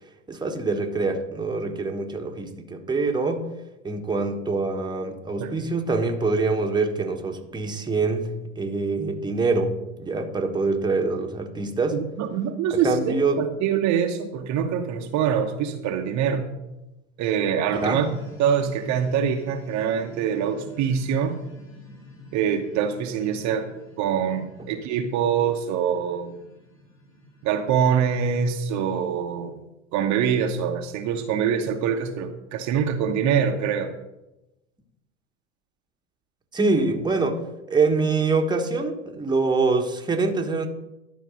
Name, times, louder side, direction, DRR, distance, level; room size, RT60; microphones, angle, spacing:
voice 1, 0.3-3.5 3.8-12.0 12.7-13.4 17.7-18.0 36.5-37.4 37.7-40.7, right 3 dB, 10° right, 3 dB, 1.3 m, -25 dB
voice 2, 5.4-5.7 11.9-16.5 17.2-18.1 18.4-21.4 22.3-23.7 24.0-26.3 27.4-29.6 29.9-33.9, right 7 dB, 45° right, 5 dB, 1.0 m, -24 dB
sound 1, 17.7-28.8, equal, 85° left, 2.9 m, -49 dB
11.5 x 4.6 x 6.3 m, 0.96 s
hypercardioid pair, 80°, 38 cm